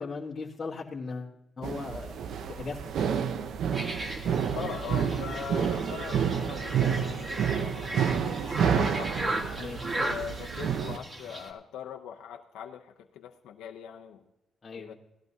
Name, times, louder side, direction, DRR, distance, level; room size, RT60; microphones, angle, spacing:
voice 1, 0.0-2.2 2.5-2.8 9.6-9.8 14.6-14.9, left 4 dB, 35° left, -5 dB, 1.5 m, -38 dB
sound 1, 1.6-11.0, right 7 dB, 70° right, 0.7 m, -29 dB
sound 2, 3.7-11.5, right 1 dB, 30° right, 2.4 m, -37 dB
voice 2, 4.5-9.1 10.0-14.2 14.8-14.9, left 8 dB, 85° left, 2 dB, 0.7 m, -41 dB
17.5 x 12.0 x 2.7 m, 0.92 s
cardioid pair, 90°, 0 cm